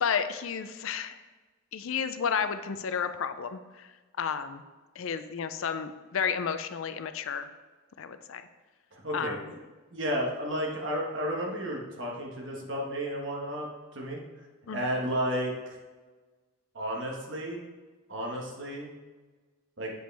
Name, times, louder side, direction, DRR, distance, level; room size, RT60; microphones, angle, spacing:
voice 1, 0.0-1.2 1.7-3.9 4.2-4.6 5.0-7.5 8.0-8.5 9.1-9.5 14.7-14.9, left 7 dB, 70° left, 10 dB, 0.4 m, -32 dB
voice 2, 8.9-9.4 9.9-13.7 13.9-14.2 14.7-15.5 16.7-17.7 18.1-18.9 19.8-19.9, equal, 55° right, -1 dB, 1.4 m, -32 dB
7.8 x 5.2 x 3.4 m, 1.3 s
head